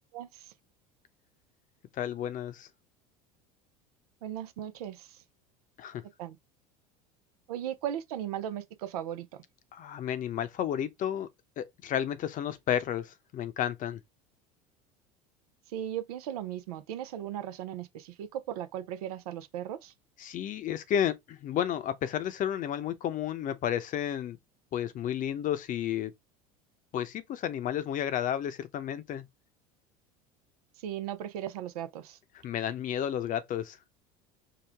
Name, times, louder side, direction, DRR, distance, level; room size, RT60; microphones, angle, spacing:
voice 1, 0.1-0.5 4.2-5.2 6.2-6.4 7.5-9.4 15.7-19.9 30.8-32.2, right 11 dB, 80° right, 0.7 m, -37 dB
voice 2, 2.0-2.7 5.8-6.0 9.7-11.3 11.6-14.0 20.2-24.4 24.7-26.1 26.9-29.3 32.4-33.8, left 10 dB, 45° left, 0.7 m, -32 dB
4.7 x 2.3 x 3.5 m
hypercardioid pair, 85°, 19 cm